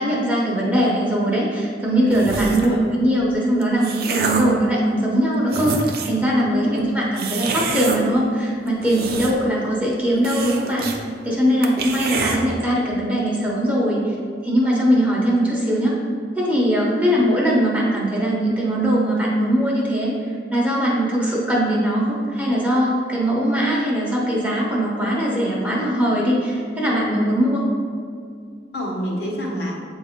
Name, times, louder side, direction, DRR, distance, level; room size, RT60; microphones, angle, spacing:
voice 1, 0.0-10.9 11.2-14.1 14.4-16.0 16.4-27.6, right 1 dB, 10° right, -4 dB, 1.0 m, -20 dB
sound 1, 2.1-2.8 3.4-4.6 5.2-5.3 5.5-6.2 7.2-8.0 8.7-9.6 9.8-9.9 10.2-11.0 11.3-11.4 11.6-12.4, right 4 dB, 55° right, 0.6 m, -27 dB
voice 2, 2.3-2.8 6.5-6.9 28.7-29.7, left 1 dB, 60° left, -3 dB, 1.3 m, -27 dB
8.0 x 2.7 x 5.1 m, 2.1 s
head